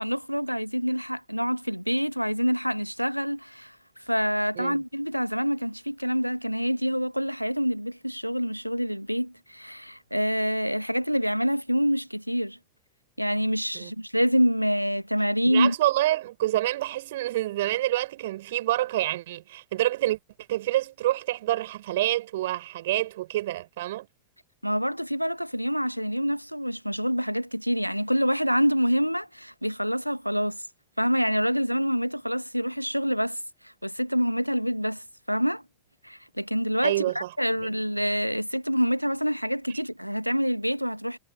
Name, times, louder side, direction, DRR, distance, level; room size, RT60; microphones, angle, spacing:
voice 1, 0.0-3.7 4.1-12.6 13.2-15.7 24.6-30.6 31.0-33.4 33.8-35.6 36.0-41.2, equal, 90° right, 1.4 m, -26 dB
voice 2, 15.5-20.2 20.5-24.1 36.8-37.3 37.6-37.7, right 15 dB, 55° right, 5.2 m, -27 dB
figure-of-eight pair, 90°, 0 cm